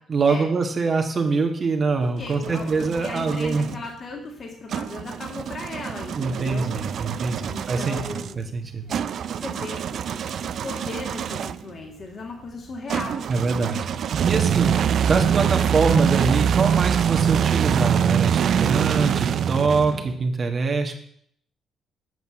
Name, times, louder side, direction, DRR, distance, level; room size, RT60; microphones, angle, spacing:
voice 1, 0.1-3.7 6.1-8.9 13.3-14.7 15.0-20.9, right 4 dB, 40° right, 4 dB, 1.5 m, -24 dB
sound 1, 2.0-3.8 4.7-11.7 12.9-20.2, right 8 dB, 65° right, 0.4 m, -24 dB
voice 2, 2.2-6.8 7.5-8.4 8.9-13.3, left 3 dB, 45° left, 1 dB, 1.8 m, -37 dB
8.1 x 5.4 x 7.7 m, 0.67 s
cardioid pair, 90°, 0 cm